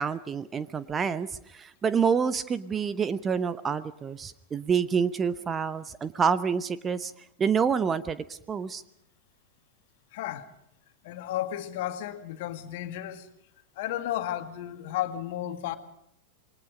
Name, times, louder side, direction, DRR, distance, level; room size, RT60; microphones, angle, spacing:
voice 1, 0.0-7.1 7.4-8.8, right 6 dB, 20° right, 0.9 m, -27 dB
voice 2, 10.1-10.5 11.0-13.3 13.8-15.8, left 12 dB, 50° left, 2.0 m, -33 dB
28.0 x 22.0 x 5.1 m
figure-of-eight pair, 90°, 0 cm